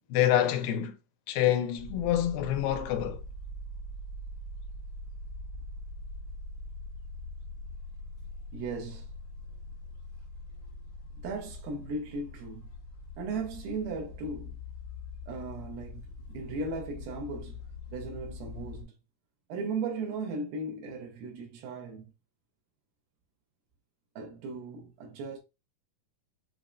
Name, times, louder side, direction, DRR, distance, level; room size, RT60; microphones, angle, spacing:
voice 1, 0.1-0.9 1.3-3.2, left 11 dB, 90° left, 2.4 m, -26 dB
sound 1, 1.8-18.8, left 2 dB, 70° left, 1.4 m, -43 dB
voice 2, 8.5-9.1 11.2-12.7 13.2-14.6 15.3-17.6 17.9-18.9 19.5-22.1 24.2-25.4, right 3 dB, 90° right, 2.8 m, -37 dB
6.4 x 3.1 x 2.5 m
omnidirectional pair, 4.1 m